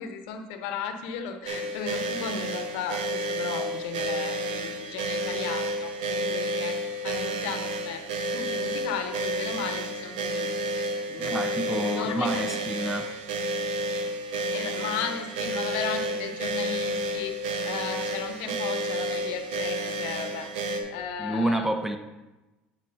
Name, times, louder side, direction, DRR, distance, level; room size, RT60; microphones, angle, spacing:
voice 1, 0.0-5.9 6.2-8.0 8.3-10.7 11.1-12.4 14.5-17.4 17.7-20.5 20.9-21.7, left 7 dB, 75° left, 7 dB, 1.0 m, -35 dB
sound 1, 1.5-20.8, right 1 dB, 80° right, 1.1 m, -30 dB
voice 2, 11.2-13.1 21.2-22.0, right 1 dB, 5° right, 7 dB, 1.0 m, -29 dB
9.5 x 4.7 x 5.8 m, 1.1 s
hypercardioid pair, 80°, 5 cm